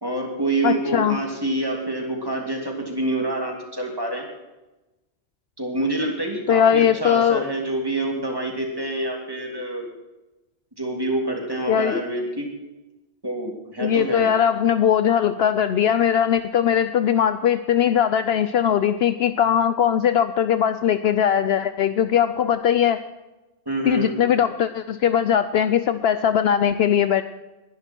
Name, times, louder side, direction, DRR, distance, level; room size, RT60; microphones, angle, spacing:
voice 1, 0.0-4.3 5.6-9.8 10.8-12.5 13.2-14.3 23.7-24.2, right 1 dB, 20° right, 1 dB, 2.9 m, -26 dB
voice 2, 0.6-1.2 6.5-7.4 11.7-12.0 13.8-23.0 23.9-27.2, left 9 dB, 70° left, 11 dB, 0.8 m, -20 dB
20.5 x 11.0 x 4.5 m, 1.0 s
omnidirectional pair, 1.1 m